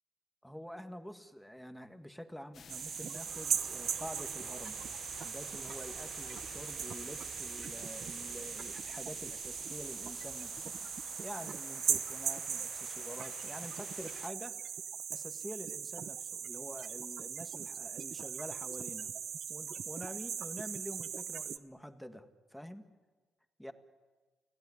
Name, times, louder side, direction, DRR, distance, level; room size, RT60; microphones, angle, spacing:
voice 1, 0.4-4.8 5.1-10.8 11.2-14.6 15.1-19.1 19.5-22.9 23.6-23.7, equal, ahead, 8 dB, 1.9 m, -47 dB
sound 1, 2.5-14.3, left 7 dB, 55° left, 0.8 m, -51 dB
sound 2, 2.7-21.6, right 8 dB, 60° right, 0.9 m, -39 dB
sound 3, 3.2-8.8, right 3 dB, 35° right, 7.1 m, -54 dB
29.5 x 17.0 x 9.9 m, 1.4 s
cardioid pair, 90°, 0 cm